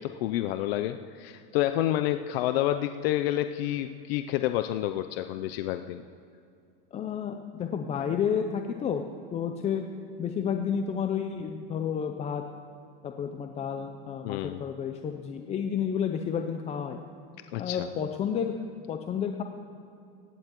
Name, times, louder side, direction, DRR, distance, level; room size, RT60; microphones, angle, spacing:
voice 1, 0.0-6.0 14.2-14.6 17.5-17.9, left 13 dB, 75° left, 9 dB, 0.5 m, -29 dB
voice 2, 6.9-9.0 9.3-9.8 10.2-12.4 13.0-17.0 17.6-18.6 18.9-19.4, left 7 dB, 20° left, 5 dB, 0.5 m, -31 dB
22.0 x 10.0 x 3.0 m, 2.5 s
supercardioid pair, 135°, 30 cm